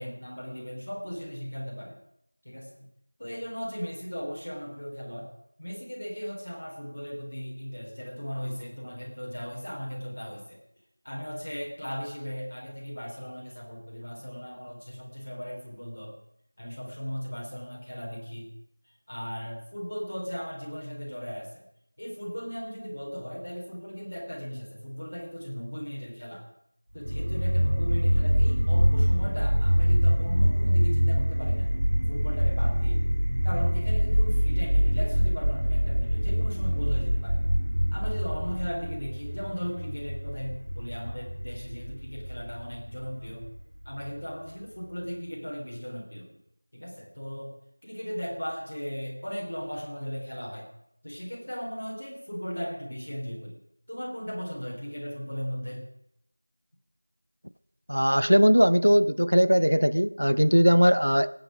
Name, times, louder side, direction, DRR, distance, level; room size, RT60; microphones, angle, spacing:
voice 1, 0.0-2.0 2.4-2.9 3.2-5.3 5.6-10.6 11.0-16.1 16.6-18.5 19.1-21.6 22.0-26.4 26.9-31.7 32.1-33.0 33.4-37.4 37.9-43.5 43.8-46.4 46.7-47.5 47.8-50.7 51.0-53.6 53.9-55.9, equal, 25° left, 3.7 m, -37 dB
sound 1, 27.0-44.1, equal, 60° right, 0.8 m, -25 dB
voice 2, 57.9-61.3, equal, 90° right, 0.8 m, -20 dB
28.5 x 9.7 x 5.2 m
figure-of-eight pair, 180°, 0 cm